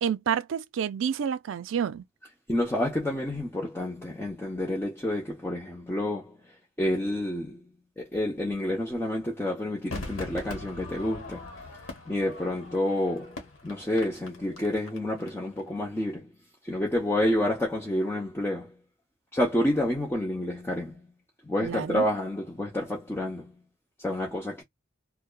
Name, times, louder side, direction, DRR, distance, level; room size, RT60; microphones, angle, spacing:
voice 1, 0.0-2.0 21.6-22.0, right 8 dB, 65° right, 0.3 m, -29 dB
voice 2, 2.5-6.4 6.8-7.6 8.0-11.5 12.1-13.4 13.6-16.3 16.6-18.7 19.3-21.0 21.5-23.5 24.0-24.6, left 1 dB, 10° left, 0.6 m, -29 dB
Crowd / Fireworks, 9.9-15.3 15.6-15.7, left 2 dB, 75° left, 1.1 m, -41 dB
2.8 x 2.2 x 2.2 m
head